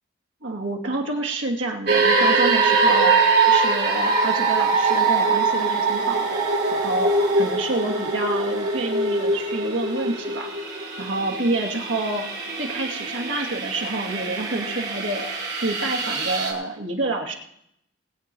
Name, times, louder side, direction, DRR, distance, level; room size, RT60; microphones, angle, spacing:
voice 1, 0.4-3.1 3.5-6.4 6.7-10.5 11.0-12.2 12.6-15.2 15.5-17.3, right 2 dB, 75° right, 0 dB, 2.5 m, -28 dB
sound 1, 1.9-16.5, right 3 dB, 55° right, 3.6 m, -23 dB
20.5 x 8.5 x 4.6 m, 0.72 s
head